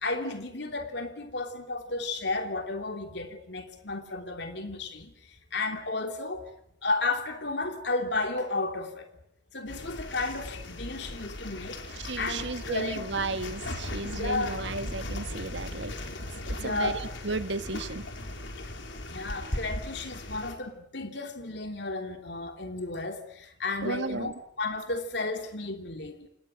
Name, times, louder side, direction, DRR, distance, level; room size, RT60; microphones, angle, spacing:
voice 1, 0.0-5.1 5.5-6.4 6.8-9.1 9.5-11.8 12.2-13.1 14.1-14.6 16.6-17.0 19.1-26.2, left 3 dB, 60° left, 5 dB, 3.2 m, -33 dB
sound 1, 9.7-20.5, left 1 dB, 80° left, 4.6 m, -38 dB
voice 2, 12.1-15.9 16.6-18.0 23.8-24.3, right 3 dB, 70° right, 11 dB, 1.5 m, -34 dB
29.0 x 28.5 x 6.4 m, 0.76 s
head